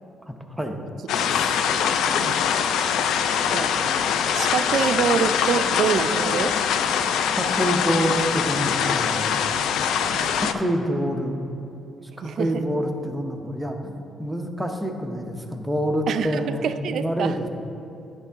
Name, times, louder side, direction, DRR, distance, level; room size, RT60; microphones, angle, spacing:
voice 1, 0.3-0.8 7.3-9.3 10.3-11.4 12.2-13.9 14.2-16.6 16.9-17.5, equal, 5° right, 3 dB, 0.8 m, -26 dB
sound 1, 1.1-10.5, left 7 dB, 80° left, 0.3 m, -23 dB
voice 2, 2.1-2.4 3.5-3.7 4.3-6.6 10.1-10.3 12.2-12.6 16.1-17.3, right 7 dB, 65° right, 10 dB, 0.4 m, -26 dB
9.6 x 5.9 x 3.5 m, 2.8 s
cardioid pair, 90°, 0 cm